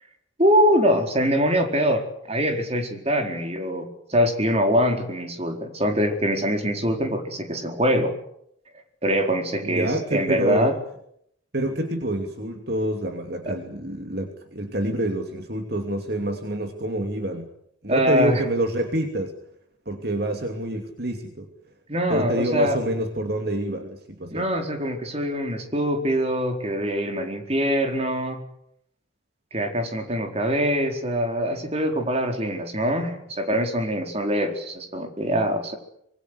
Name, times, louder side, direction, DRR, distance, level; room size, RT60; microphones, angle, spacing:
voice 1, 0.4-8.1 9.0-10.7 13.5-13.6 17.9-18.4 21.9-22.8 24.3-28.4 29.5-35.7, equal, 30° right, 4 dB, 4.3 m, -23 dB
voice 2, 9.6-10.7 11.5-17.5 17.8-19.3 19.9-21.5 22.1-24.5, right 1 dB, 50° right, 5 dB, 2.8 m, -27 dB
25.5 x 23.5 x 8.2 m, 0.73 s
head